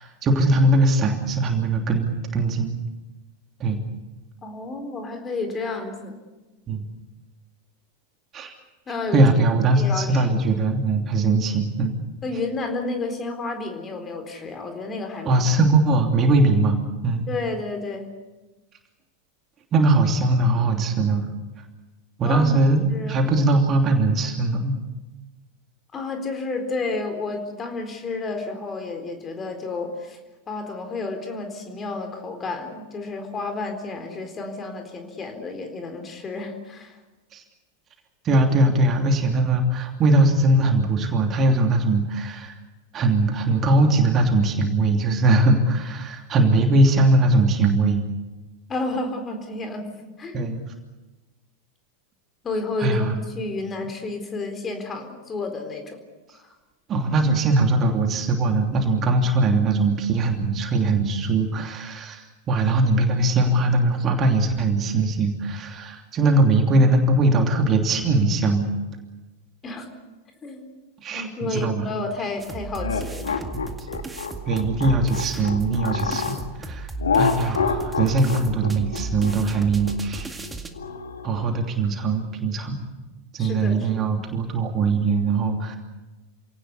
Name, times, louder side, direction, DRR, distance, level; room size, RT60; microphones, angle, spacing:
voice 1, 0.0-2.8 3.6-3.8 6.7-6.8 8.3-8.5 9.1-11.9 15.2-17.2 19.7-21.3 22.2-24.8 37.3-37.4 38.2-42.6 42.9-48.0 50.3-50.6 52.8-53.2 56.9-68.7 71.0-71.9 74.5-76.2 76.6-76.9 77.1-80.3 81.2-82.8 83.3-85.8, right 2 dB, 30° right, 4 dB, 3.0 m, -21 dB
voice 2, 4.4-6.2 8.9-9.2 9.7-10.3 12.2-15.4 17.3-18.1 22.2-23.2 25.9-30.2 30.5-37.0 48.7-50.5 52.4-56.0 56.3-56.5 69.6-69.8 70.4-70.7 71.1-73.3 83.4-84.1, left 3 dB, 20° left, 5 dB, 4.0 m, -31 dB
sound 1, 72.4-80.7, right 3 dB, 10° right, 2.1 m, -35 dB
sound 2, 72.8-76.4 77.0-81.5, left 5 dB, 70° left, 2.1 m, -27 dB
28.0 x 18.0 x 8.4 m, 1.1 s
figure-of-eight pair, 90°, 0 cm